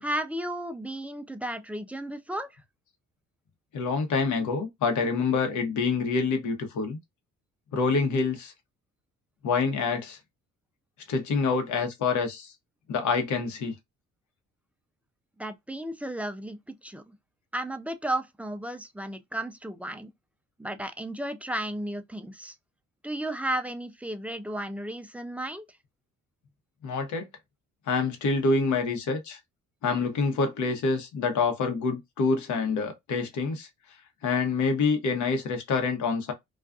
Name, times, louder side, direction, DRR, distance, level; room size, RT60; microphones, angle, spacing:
voice 1, 0.0-2.6 15.4-17.2 17.5-20.1 20.6-22.6 23.0-25.7, right 1 dB, 5° right, 0.3 m, -34 dB
voice 2, 3.7-7.0 7.7-8.5 9.4-10.2 11.1-12.5 12.9-13.7 26.8-27.3 27.9-29.4 29.8-33.7 34.2-36.3, left 4 dB, 75° left, 0.9 m, -26 dB
2.5 x 2.3 x 2.3 m
cardioid pair, 90°, 30 cm